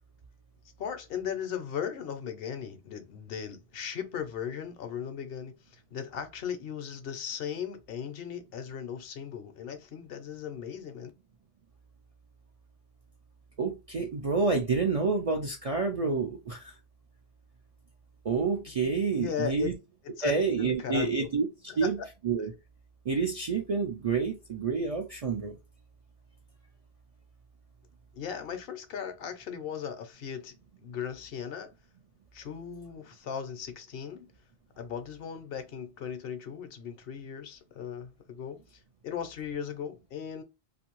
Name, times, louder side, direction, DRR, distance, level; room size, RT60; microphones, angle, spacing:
voice 1, 0.8-11.1 18.7-18.9 19.2-19.7 20.2-21.3 21.7-22.1 22.4-22.5 28.1-30.5 30.8-31.7 32.3-34.3 34.8-40.4, left 8 dB, 65° left, 0.8 m, -37 dB
voice 2, 13.6-16.7 18.2-19.7 20.2-21.5 21.8-22.0 22.2-22.5 23.1-25.6, right 4 dB, 55° right, 0.4 m, -28 dB
2.6 x 2.5 x 2.9 m
omnidirectional pair, 1.1 m